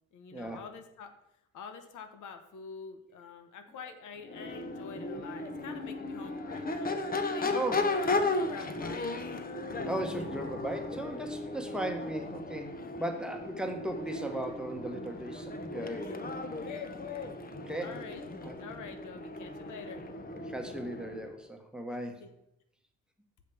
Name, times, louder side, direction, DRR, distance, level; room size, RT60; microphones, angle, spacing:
voice 1, 0.1-1.1 1.5-6.9 7.3-9.4 16.0-16.2 16.6-17.3 17.8-20.0 22.2-22.3, left 5 dB, 80° left, 8 dB, 1.1 m, -47 dB
Crowd / Race car auto racing / Accelerating revving vroom, 4.2-21.3, left 2 dB, 30° left, 1.0 m, -36 dB
voice 2, 7.4-7.9 9.8-16.1 17.7-17.9 18.4-18.5 20.5-22.2, right 1 dB, 5° right, 5 dB, 1.2 m, -37 dB
6.5 x 5.1 x 7.0 m, 0.83 s
cardioid pair, 90°, 30 cm